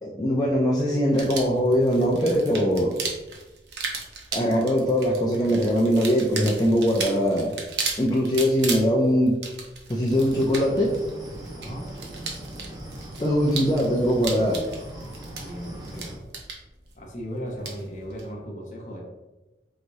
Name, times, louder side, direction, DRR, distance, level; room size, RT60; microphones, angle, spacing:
voice 1, 0.0-3.0 4.3-7.5 8.0-9.4 9.9-11.0 13.2-14.7, equal, 20° left, -3 dB, 0.4 m, -22 dB
sound 1, 1.1-18.3, right 4 dB, 75° right, 0.7 m, -36 dB
sound 2, 10.1-16.2, right 1 dB, 20° right, 0.7 m, -39 dB
voice 2, 11.5-11.9 15.3-16.3 16.9-19.0, equal, 45° left, -1 dB, 0.9 m, -37 dB
4.8 x 3.0 x 2.6 m, 1.1 s
head